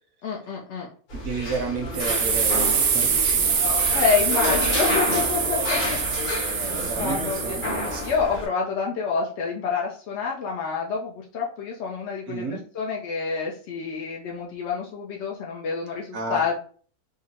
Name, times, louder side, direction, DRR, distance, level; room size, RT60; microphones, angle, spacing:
voice 1, 0.2-0.9 3.9-6.0 6.3-7.6 8.0-12.5 12.7-16.5, left 5 dB, 65° left, -2 dB, 0.7 m, -28 dB
sound 1, 1.1-8.5, left 1 dB, 90° left, 1.6 m, -30 dB
voice 2, 1.1-3.8 5.7-8.0 12.3-12.6 16.1-16.4, right 3 dB, 70° right, 3 dB, 1.1 m, -33 dB
sound 2, 1.9-8.1, right 6 dB, 85° right, 1.2 m, -24 dB
3.6 x 2.0 x 2.7 m, 0.43 s
omnidirectional pair, 1.6 m